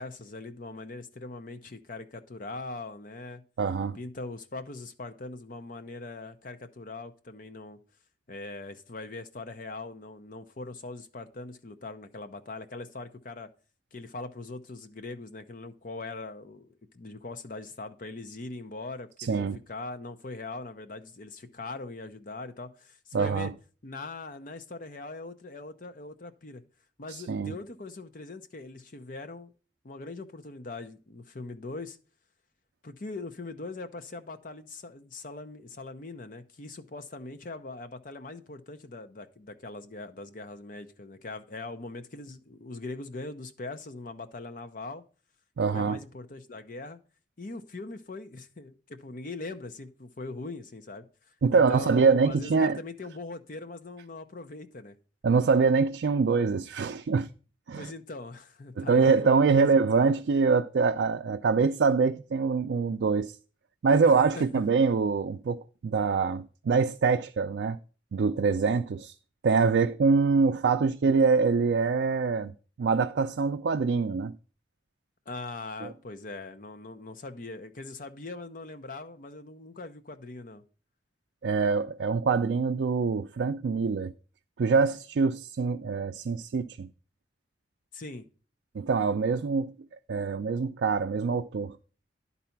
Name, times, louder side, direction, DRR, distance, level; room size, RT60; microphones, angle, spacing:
voice 1, 0.0-3.4 3.9-7.8 8.3-13.5 13.9-23.5 23.8-26.6 27.0-29.5 29.8-32.0 32.8-45.0 45.7-47.0 47.4-51.1 51.5-55.0 57.8-60.1 64.0-64.6 75.3-80.6 87.9-88.2, left 3 dB, 50° left, 0.7 m, -41 dB
voice 2, 3.6-4.0 19.2-19.6 23.1-23.5 27.1-27.5 45.6-46.0 51.4-52.8 55.2-57.3 57.7-57.9 58.8-63.3 63.8-67.8 68.1-69.1 69.4-72.5 72.8-74.4 75.8-75.9 81.4-84.1 84.6-86.9 88.7-89.7 90.1-91.8, right 4 dB, 75° right, 0.4 m, -24 dB
11.0 x 4.1 x 5.8 m
head